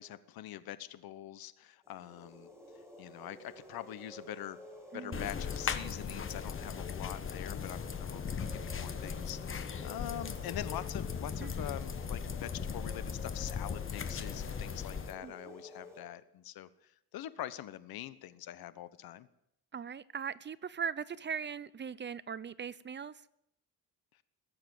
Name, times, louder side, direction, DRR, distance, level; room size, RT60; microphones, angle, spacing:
voice 1, 0.0-2.5 3.0-4.6 4.9-19.3, left 12 dB, 80° left, 1.1 m, -44 dB
sound 1, 1.8-16.0, equal, 5° right, 5.6 m, -52 dB
voice 2, 4.9-5.3 11.4-11.7 15.2-15.6 19.7-23.1, right 7 dB, 30° right, 0.5 m, -40 dB
sound 2, 5.1-15.1, left 6 dB, 35° left, 1.3 m, -38 dB
20.0 x 7.6 x 9.3 m
cardioid pair, 110°, 36 cm